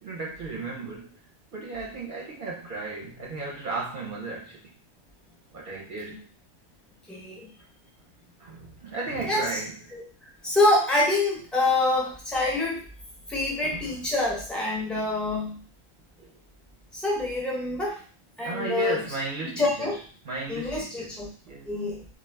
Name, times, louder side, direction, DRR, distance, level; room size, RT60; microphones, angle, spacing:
voice 1, 0.0-1.2 1.5-4.7 5.5-6.3 8.4-10.0 13.6-14.0 16.2-16.3 18.4-19.9 20.2-21.2 21.5-21.7, right 3 dB, 50° right, -3 dB, 0.7 m, -35 dB
voice 2, 7.1-7.5 9.3-9.4 9.9-12.8 13.3-15.6 16.9-18.0 18.4-19.0 19.5-20.0 20.5-21.3 21.7-22.0, left 2 dB, ahead, -4 dB, 0.4 m, -26 dB
2.4 x 2.2 x 3.3 m, 0.41 s
omnidirectional pair, 1.4 m